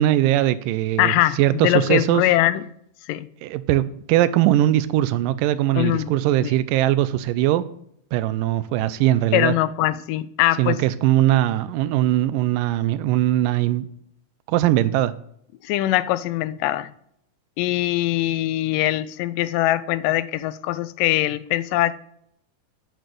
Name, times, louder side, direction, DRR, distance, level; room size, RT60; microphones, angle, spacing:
voice 1, 0.0-2.2 3.4-7.6 8.1-9.5 10.6-13.9 14.5-15.1, right 13 dB, 85° right, 2.2 m, -20 dB
voice 2, 1.0-2.7 3.1-3.3 5.8-6.1 6.4-6.5 9.3-10.8 15.6-16.9 17.6-21.9, left 15 dB, 85° left, 2.2 m, -22 dB
9.1 x 6.2 x 7.8 m
omnidirectional pair, 3.8 m